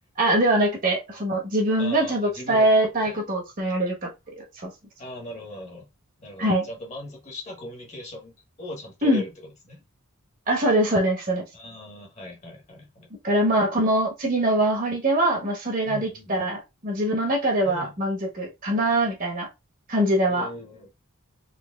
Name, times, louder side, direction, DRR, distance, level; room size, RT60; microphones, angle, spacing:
voice 1, 0.2-4.1 4.4-4.7 6.4-6.7 9.0-9.2 10.5-11.4 13.2-19.5 19.9-20.5, right 1 dB, 40° right, 1.2 m, -23 dB
voice 2, 1.8-2.7 3.0-3.2 5.0-5.9 6.2-8.3 8.6-9.3 9.7-9.8 11.5-13.1 15.8-16.5 17.6-17.9 20.3-20.9, left 1 dB, 30° left, 1.3 m, -39 dB
4.0 x 3.0 x 2.3 m
head